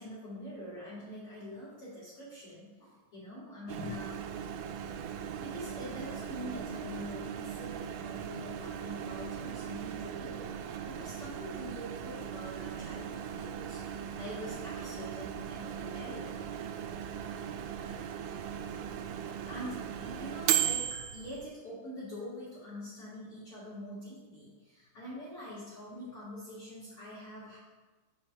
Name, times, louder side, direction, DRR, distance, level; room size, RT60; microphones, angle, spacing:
voice 1, 0.0-4.1 5.1-10.4 10.8-16.3 19.4-27.6, left 1 dB, 60° left, -7 dB, 1.4 m, -45 dB
Microwave oven, 3.7-21.5, right 9 dB, 85° right, 2.9 m, -37 dB
6.5 x 5.7 x 6.4 m, 1.3 s
omnidirectional pair, 5.5 m